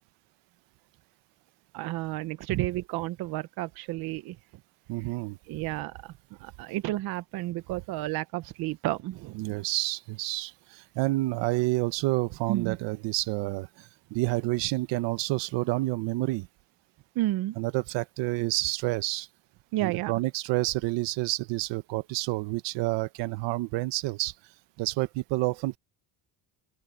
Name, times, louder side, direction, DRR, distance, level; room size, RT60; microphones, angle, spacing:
voice 1, 1.7-4.4 5.5-6.1 6.4-9.6 12.5-12.8 17.2-17.6 19.7-20.1, right 16 dB, 60° right, 0.7 m, -31 dB
voice 2, 4.9-5.4 9.3-16.5 17.6-19.3 19.8-24.3 24.8-25.8, right 19 dB, 80° right, 1.1 m, -29 dB
open air
cardioid pair, 170°, 42 cm